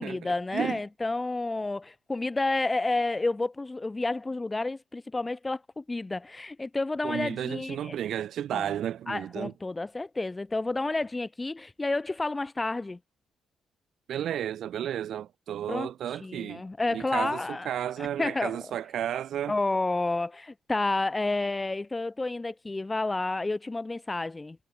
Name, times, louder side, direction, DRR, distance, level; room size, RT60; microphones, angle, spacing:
voice 1, 0.0-7.9 8.5-8.7 9.1-13.0 15.7-15.9 16.2-17.7 18.2-18.6 19.5-24.6, left 2 dB, 20° left, 4.5 m, -30 dB
voice 2, 7.0-9.5 14.1-16.6 16.9-19.6, right 10 dB, 70° right, 2.2 m, -33 dB
cardioid pair, 90°, 0 cm